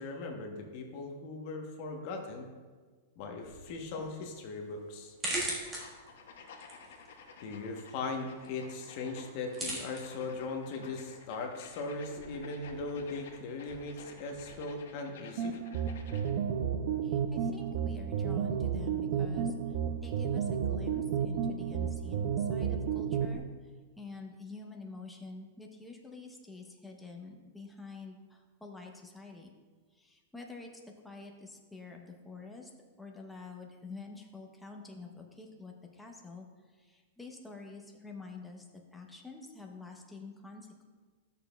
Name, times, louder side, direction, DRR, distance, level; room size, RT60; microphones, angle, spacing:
voice 1, 0.0-2.5 3.2-5.1 7.4-15.6, left 3 dB, 40° left, 3 dB, 0.9 m, -39 dB
sound 1, 3.4-14.6, right 1 dB, 15° right, 1.4 m, -44 dB
sound 2, 5.6-16.4, left 5 dB, 75° left, 1.1 m, -53 dB
sound 3, 15.4-23.4, right 7 dB, 45° right, 0.4 m, -32 dB
voice 2, 17.0-19.8 20.0-29.6 29.9-30.7 31.0-32.7 33.0-40.8, left 3 dB, 5° left, 1 dB, 0.6 m, -48 dB
12.5 x 6.8 x 2.2 m, 1.4 s
supercardioid pair, 170°, 0 cm